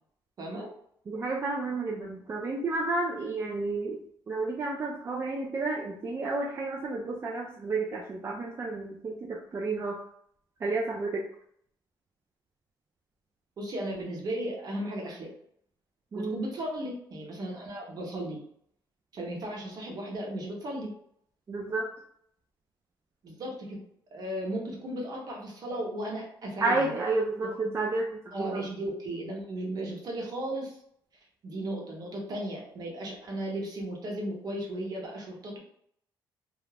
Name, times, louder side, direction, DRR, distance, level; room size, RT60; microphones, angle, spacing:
voice 1, 1.1-4.0 4.3-10.0 10.6-11.2 16.1-16.4 21.5-21.9 26.6-28.6, right 3 dB, 30° right, -1 dB, 0.3 m, -31 dB
voice 2, 13.6-15.3 16.1-18.4 19.1-20.9 23.2-23.8 24.1-26.9 28.3-30.8 31.4-35.6, right 1 dB, 50° right, -1 dB, 0.9 m, -35 dB
2.4 x 2.0 x 3.2 m, 0.68 s
cardioid pair, 115°, 8 cm